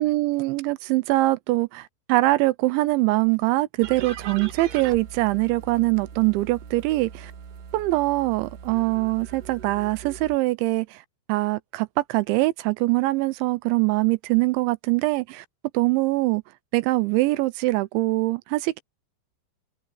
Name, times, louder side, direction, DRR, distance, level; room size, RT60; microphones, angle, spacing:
voice 1, 0.0-7.3 7.7-11.0 11.3-15.5 15.7-16.4 16.7-18.8, right 20 dB, 85° right, 2.8 m, -23 dB
sound 1, 3.8-10.4, right 7 dB, 65° right, 3.8 m, -40 dB
open air
omnidirectional pair, 5.6 m